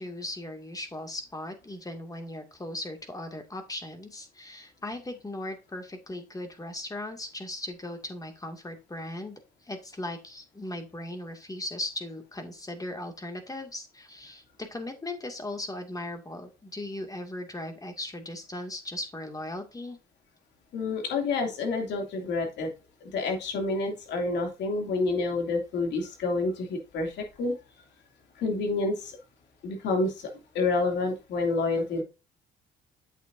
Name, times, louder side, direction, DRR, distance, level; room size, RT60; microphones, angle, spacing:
voice 1, 0.0-20.0, left 1 dB, 20° left, 5 dB, 2.3 m, -38 dB
voice 2, 20.7-22.7 23.0-27.5 28.4-29.2 29.6-30.3 30.5-32.0, left 3 dB, 70° left, 2 dB, 2.8 m, -28 dB
8.3 x 7.1 x 2.7 m, 0.29 s
supercardioid pair, 65°, 19 cm